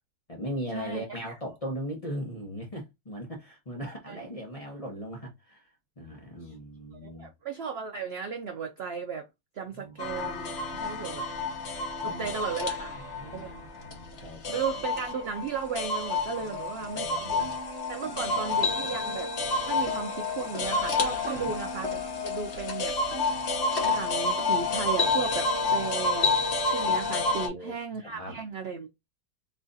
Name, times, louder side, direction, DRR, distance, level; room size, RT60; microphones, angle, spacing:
voice 1, 0.3-7.3 9.7-10.0 10.7-11.2 12.0-12.7 13.2-14.6 16.4-17.5 18.1-19.0 21.3-21.5 27.3-27.7 28.0-28.4, equal, 30° left, 0.7 m, -40 dB
voice 2, 7.0-9.3 9.6-11.3 12.0-13.0 13.3-13.5 14.5-19.3 19.7-23.0 23.8-26.3 26.7-28.9, right 6 dB, 70° right, 0.5 m, -35 dB
sound 1, 10.0-27.5, left 3 dB, 45° left, 1.0 m, -29 dB
3.2 x 2.4 x 3.8 m
omnidirectional pair, 1.8 m